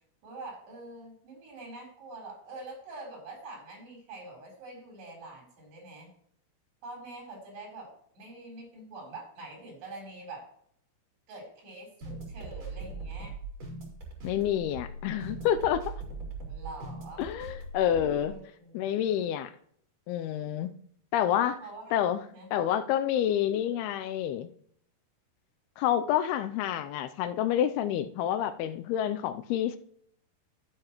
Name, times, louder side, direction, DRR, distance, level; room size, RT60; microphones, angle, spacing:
voice 1, 0.2-6.1 6.8-10.5 11.3-13.3 16.5-17.3 18.2-19.2 21.6-22.0 22.3-22.5, right 2 dB, 85° right, 6.1 m, -45 dB
sound 1, 12.0-18.3, right 3 dB, 45° right, 3.3 m, -40 dB
voice 2, 14.2-15.8 17.2-18.3 18.7-19.5 20.1-20.7 21.1-21.6 21.9-22.2 22.5-24.5 25.8-29.8, left 10 dB, 80° left, 2.4 m, -28 dB
13.5 x 7.6 x 3.0 m
omnidirectional pair, 4.7 m